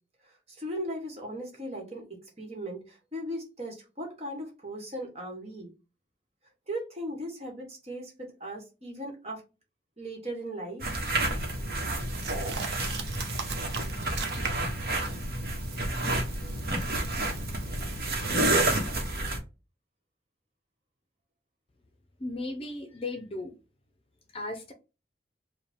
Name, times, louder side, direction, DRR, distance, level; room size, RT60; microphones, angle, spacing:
voice 1, 0.6-2.1 2.4-5.7 6.7-9.4 10.0-10.9, equal, 35° right, 1.3 m, -37 dB
sound 1, 10.8-19.4, right 2 dB, 60° right, 1.0 m, -30 dB
sound 2, 12.1-14.8 15.1-18.9, right 5 dB, 80° right, 0.8 m, -40 dB
voice 2, 22.2-23.6 24.3-24.7, left 2 dB, 35° left, 0.7 m, -36 dB
4.8 x 2.3 x 3.5 m
head